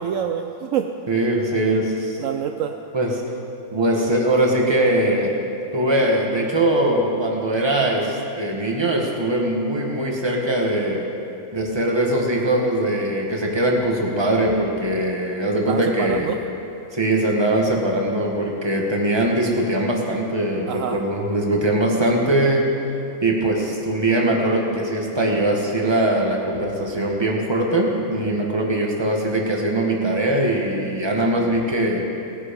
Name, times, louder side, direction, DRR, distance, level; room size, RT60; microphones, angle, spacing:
voice 1, 0.0-0.9 2.2-2.7 15.7-16.4 20.7-21.0, right 9 dB, 70° right, 6 dB, 0.9 m, -26 dB
voice 2, 1.1-2.2 2.9-3.2 3.7-5.4 5.7-11.1 11.5-16.3 16.9-22.7 23.2-32.0, right 1 dB, 20° right, -1 dB, 1.6 m, -21 dB
18.0 x 9.7 x 5.3 m, 2.8 s
omnidirectional pair, 1.5 m